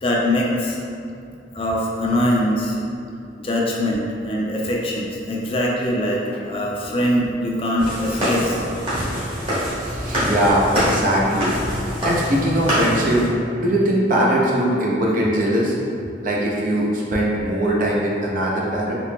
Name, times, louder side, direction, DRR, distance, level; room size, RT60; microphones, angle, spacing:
voice 1, 0.0-0.8 1.5-2.8 3.4-8.8, left 1 dB, 30° left, -3 dB, 0.4 m, -22 dB
sound 1, 7.8-13.3, equal, 30° right, 1.3 m, -24 dB
voice 2, 9.8-11.5 12.0-13.3 13.6-15.8 16.2-18.9, right 1 dB, 50° right, -4 dB, 0.6 m, -20 dB
4.2 x 2.9 x 2.2 m, 2.5 s
head